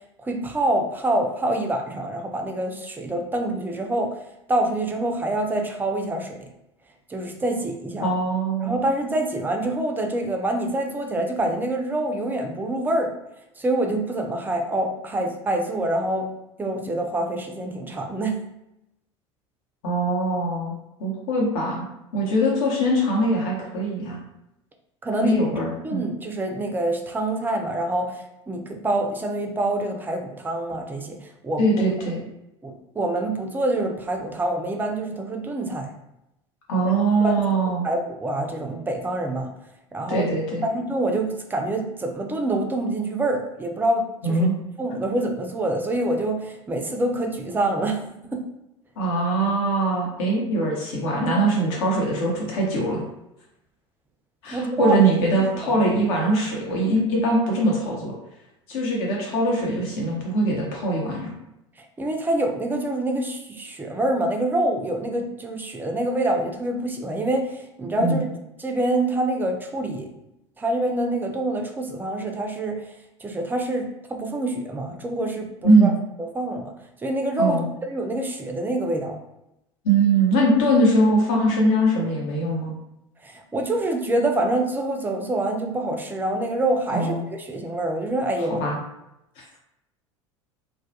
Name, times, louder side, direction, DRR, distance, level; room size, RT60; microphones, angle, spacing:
voice 1, 0.2-4.2 4.5-6.5 7.1-8.1 8.6-13.1 13.6-16.3 16.6-18.4 25.0-25.5 25.8-31.8 32.6-35.9 36.8-36.9 37.2-37.4 37.8-39.5 39.9-40.3 40.6-44.5 44.8-48.4 54.5-55.0 55.6-55.8 61.8-68.2 68.6-70.2 70.6-72.9 73.2-75.9 76.2-76.7 77.0-79.2 83.2-88.6, right 1 dB, 10° right, 3 dB, 0.4 m, -26 dB
voice 2, 8.0-8.8 19.8-20.7 21.0-21.8 22.1-24.2 25.2-26.0 31.6-32.2 36.7-37.8 40.1-40.6 44.2-44.6 49.0-53.0 54.4-58.1 58.7-61.3 68.0-68.2 75.6-75.9 77.4-77.7 79.8-82.7 86.9-87.2 88.6-88.8 89.4-89.6, right 1 dB, 60° left, -2 dB, 0.8 m, -22 dB
2.2 x 2.1 x 2.7 m, 0.87 s
figure-of-eight pair, 70°, 16 cm